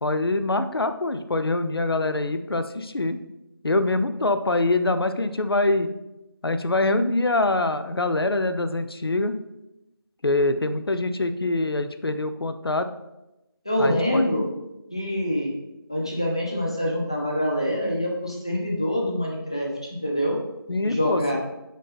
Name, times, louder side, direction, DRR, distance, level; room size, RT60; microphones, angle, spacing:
voice 1, 0.0-3.2 3.6-5.9 6.4-9.4 10.2-12.9 13.8-14.2 20.7-21.4, left 2 dB, 75° left, 10 dB, 0.6 m, -24 dB
voice 2, 13.6-14.4 14.9-15.5 15.9-20.4 20.8-21.4, equal, 15° left, -1 dB, 0.6 m, -25 dB
5.2 x 5.0 x 5.8 m, 0.95 s
figure-of-eight pair, 170°, 13 cm